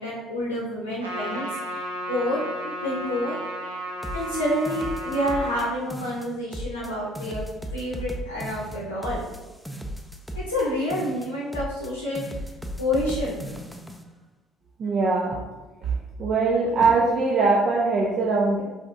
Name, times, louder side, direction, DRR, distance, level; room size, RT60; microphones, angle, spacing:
voice 1, 0.0-1.5 1.7-3.4 4.1-7.4 7.7-9.2 10.3-12.2 12.8-13.5, left 1 dB, 80° left, -6 dB, 0.7 m, -28 dB
Trumpet, 1.0-5.7, right 1 dB, 85° right, 0.7 m, -33 dB
sound 1, 4.0-5.7 5.9-6.9 7.2-10.7 10.9-11.9 12.2-14.0, equal, 5° left, 0.5 m, -36 dB
voice 2, 14.8-15.3 16.2-18.6, right 3 dB, 45° right, -3 dB, 0.6 m, -21 dB
4.8 x 3.5 x 2.5 m, 1.1 s
figure-of-eight pair, 55°, 0 cm